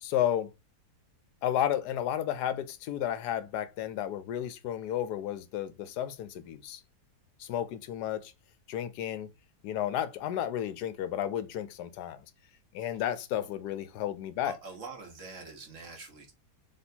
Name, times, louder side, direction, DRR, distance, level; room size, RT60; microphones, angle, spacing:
voice 1, 0.0-0.5 1.4-6.8 7.4-8.3 8.7-9.3 9.6-12.2 12.7-14.6, left 11 dB, 75° left, 1.1 m, -32 dB
voice 2, 14.4-16.3, right 4 dB, 50° right, 1.4 m, -45 dB
4.2 x 3.4 x 2.7 m
omnidirectional pair, 1.8 m